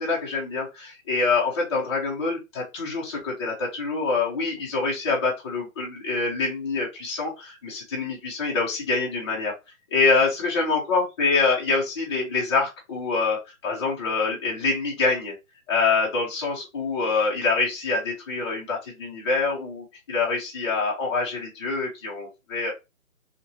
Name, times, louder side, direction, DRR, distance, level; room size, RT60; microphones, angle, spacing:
voice 1, 0.0-9.5 9.9-15.3 15.7-22.7, left 4 dB, 20° left, -5 dB, 0.7 m, -25 dB
2.9 x 2.8 x 2.7 m, 0.24 s
hypercardioid pair, 150°, 43 cm